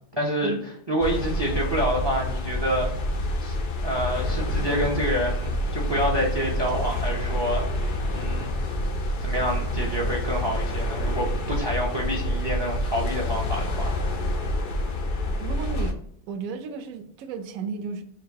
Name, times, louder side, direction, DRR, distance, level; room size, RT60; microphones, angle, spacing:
voice 1, 0.1-0.5 0.9-2.9 3.4-3.6 3.8-8.5 9.2-14.0, equal, 35° right, -2 dB, 0.4 m, -27 dB
sound 1, 1.0-15.9, left 1 dB, 85° left, 0.4 m, -27 dB
voice 2, 15.4-16.0 16.3-18.0, right 5 dB, 70° right, 7 dB, 1.0 m, -33 dB
4.7 x 2.5 x 2.9 m, 0.69 s
omnidirectional pair, 1.6 m